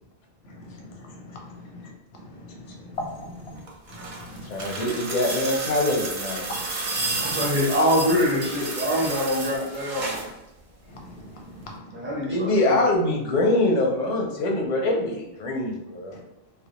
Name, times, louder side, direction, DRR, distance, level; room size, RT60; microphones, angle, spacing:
voice 1, 0.4-3.6 3.9-4.6 6.5-6.6 7.0-7.4 10.9-12.1, left 1 dB, 90° left, 0 dB, 0.9 m, -40 dB
sound 1, 3.6-10.3 11.6-11.7, right 3 dB, 60° right, 0.6 m, -31 dB
voice 2, 4.5-6.4 12.3-16.2, left 2 dB, 55° left, 0 dB, 0.5 m, -24 dB
voice 3, 7.2-10.2 11.9-12.8, equal, 15° right, -5 dB, 0.5 m, -24 dB
2.1 x 2.1 x 2.8 m, 0.88 s
omnidirectional pair, 1.0 m